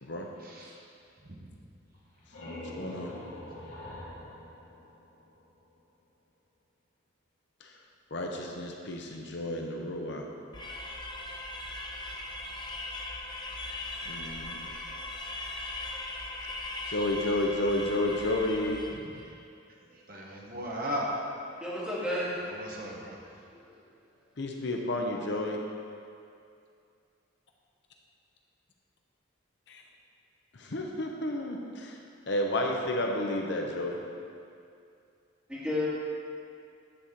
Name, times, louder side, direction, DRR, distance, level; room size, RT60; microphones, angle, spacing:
voice 1, 0.4-0.8 1.2-1.5 19.0-19.3 19.9-21.1 22.4-23.2, equal, 45° right, -3 dB, 1.1 m, -37 dB
sound 1, 1.9-5.6, left 1 dB, 75° left, 2.2 m, -44 dB
voice 2, 2.8-3.1 7.6-7.7 8.1-10.2 14.1-14.6 16.9-18.8 24.4-25.6 29.7-29.8 30.5-32.0 32.3-34.0, left 1 dB, 55° left, 1 dB, 0.8 m, -31 dB
sound 2, 10.5-19.1, left 2 dB, 20° left, 0.7 m, -39 dB
voice 3, 21.6-22.3 23.5-23.8 35.5-35.9, left 1 dB, 5° right, -9 dB, 2.3 m, -32 dB
10.0 x 4.2 x 7.2 m, 2.4 s
head